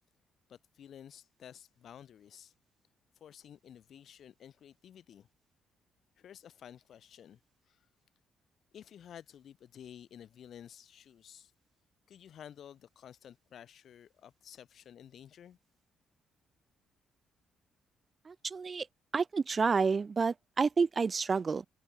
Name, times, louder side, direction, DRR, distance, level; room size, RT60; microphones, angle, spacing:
voice 1, 0.5-2.5 3.2-5.3 6.2-7.4 7.6-7.9 8.7-11.5 12.1-15.6, left 9 dB, 65° left, 3.6 m, -52 dB
voice 2, 18.3-18.9 19.1-21.6, right 5 dB, 35° right, 0.3 m, -29 dB
cardioid pair, 90°, 0 cm